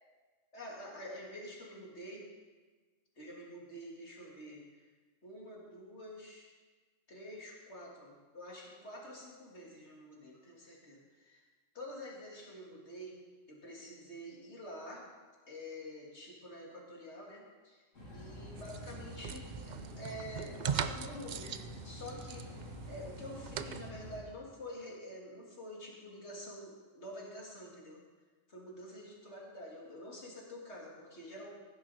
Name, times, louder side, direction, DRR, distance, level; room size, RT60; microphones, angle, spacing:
voice 1, 0.5-2.2 3.2-4.8 5.2-6.5 7.1-11.4 11.7-13.2 13.5-15.0 15.5-17.8 18.1-21.5 21.8-28.0 28.5-31.5, left 1 dB, 60° left, -3 dB, 2.8 m, -47 dB
sound 1, 17.9-24.2, equal, 80° left, 3.1 m, -47 dB
sound 2, 18.6-23.9, right 8 dB, 70° right, 0.4 m, -41 dB
15.0 x 10.5 x 4.3 m, 1.4 s
omnidirectional pair, 1.3 m